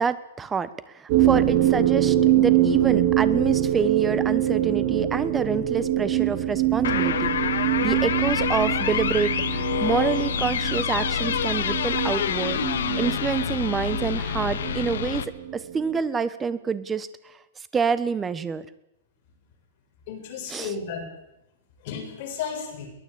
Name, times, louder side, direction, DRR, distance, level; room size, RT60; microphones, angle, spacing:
voice 1, 0.0-7.3 7.8-15.2 15.5-18.6 20.5-20.7, right 6 dB, 10° right, 15 dB, 1.2 m, -27 dB
sound 1, 1.1-16.0, right 12 dB, 40° right, 4.0 m, -24 dB
sound 2, 6.8-15.3, left 8 dB, 80° left, 1.9 m, -27 dB
voice 2, 20.1-21.1 21.8-22.9, left 6 dB, 40° left, 3 dB, 7.3 m, -33 dB
22.5 x 19.5 x 8.8 m, 0.85 s
supercardioid pair, 170°, 0 cm